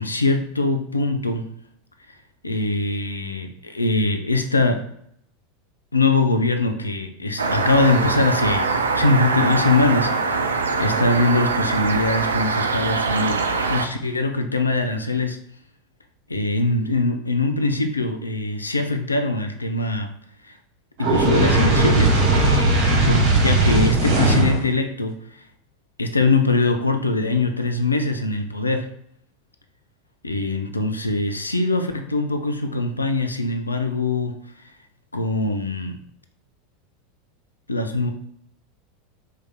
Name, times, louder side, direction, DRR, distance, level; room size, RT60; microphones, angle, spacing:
voice 1, 0.0-1.5 2.4-4.9 5.9-15.4 16.3-20.1 20.4-20.6 21.0-22.8 23.0-25.4 26.0-28.9 30.2-34.4 35.1-36.0 37.7-38.1, left 2 dB, 80° left, 6 dB, 0.4 m, -22 dB
sound 1, 7.4-13.9, right 4 dB, 75° right, 0.3 m, -23 dB
Fire, 21.0-24.7, right 2 dB, 55° right, 1.1 m, -18 dB
4.6 x 3.2 x 2.2 m, 0.68 s
figure-of-eight pair, 80°, 0 cm